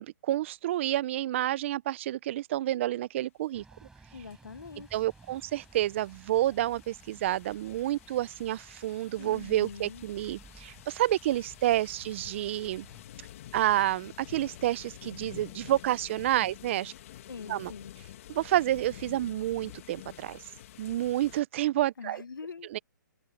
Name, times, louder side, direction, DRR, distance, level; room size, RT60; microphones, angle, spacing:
voice 1, 0.0-3.6 4.9-12.9 13.5-16.9 17.5-17.7 18.3-20.4 20.8-22.2 22.7-22.8, right 14 dB, 35° right, 0.7 m, -29 dB
sound 1, 3.5-13.0, right 3 dB, 5° right, 7.3 m, -56 dB
voice 2, 4.1-5.1 9.2-10.0 17.3-17.9 22.0-22.8, left 5 dB, 85° left, 1.3 m, -43 dB
sound 2, 4.3-21.4, left 12 dB, 45° left, 2.1 m, -50 dB
hypercardioid pair, 150°, 11 cm